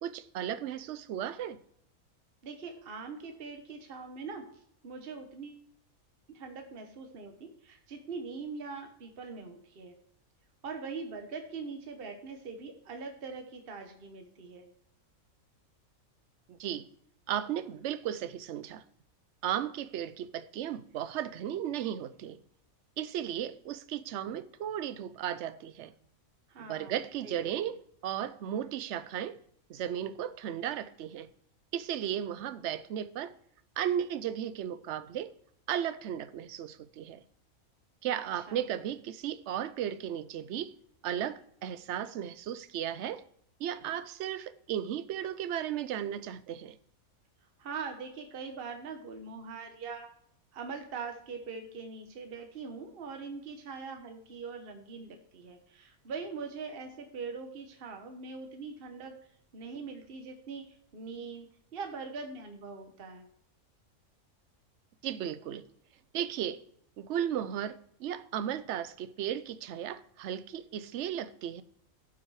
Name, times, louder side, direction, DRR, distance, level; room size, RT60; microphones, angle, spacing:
voice 1, 0.0-1.6 16.5-16.9 17.3-18.8 19.4-22.4 23.0-25.9 26.6-29.4 29.7-31.3 31.7-33.3 33.8-35.3 35.7-37.2 38.0-40.7 41.0-43.2 43.6-46.8 65.0-65.6 66.1-66.6 67.0-71.6, right 10 dB, 60° right, 0.8 m, -35 dB
voice 2, 2.4-4.4 4.8-5.6 6.3-9.9 10.6-14.7 26.5-27.5 38.3-38.6 47.6-50.1 50.5-59.1 59.5-63.3, right 4 dB, 45° right, 1.2 m, -42 dB
12.0 x 6.0 x 4.8 m
omnidirectional pair, 1.5 m